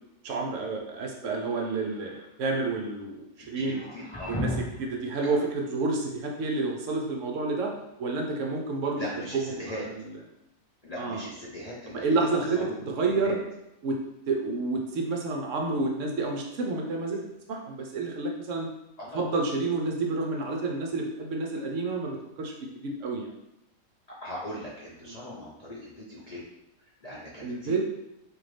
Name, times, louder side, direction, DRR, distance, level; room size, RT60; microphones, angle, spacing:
voice 1, 0.2-3.8 4.3-7.7 8.0-9.0 11.0-11.2 12.0-12.6 12.9-13.4 13.8-14.0 14.3-17.2 17.5-18.7 19.1-23.3 27.4-27.8, right 3 dB, 65° right, 1 dB, 0.8 m, -29 dB
sound 1, 1.4-2.3 3.7-4.9, left 1 dB, 20° left, 1.0 m, -35 dB
voice 2, 3.4-4.3 5.2-5.4 9.0-9.8 10.8-13.4 19.0-19.3 24.2-26.4 26.8-27.8, equal, 65° left, -7 dB, 0.3 m, -40 dB
3.9 x 2.8 x 3.2 m, 0.86 s
omnidirectional pair, 1.8 m